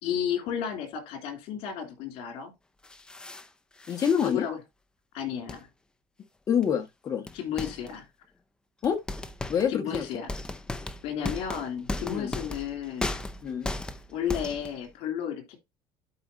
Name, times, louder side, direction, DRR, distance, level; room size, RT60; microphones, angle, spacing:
voice 1, 0.0-2.5 4.2-4.6 5.1-5.7 7.3-8.1 9.7-10.3 11.0-13.2 14.1-15.6, left 9 dB, 70° left, 3.1 m, -33 dB
sound 1, 2.8-3.5 3.8-4.3 5.5-5.6 6.6-6.7 7.3-8.0 8.8-14.9, left 2 dB, 10° left, 0.6 m, -36 dB
voice 2, 3.9-4.5 6.5-7.3 8.8-9.0 9.5-10.0 12.0-12.3 13.4-13.7, left 8 dB, 35° left, 1.6 m, -26 dB
12.0 x 4.9 x 2.7 m
cardioid pair, 140°, 10 cm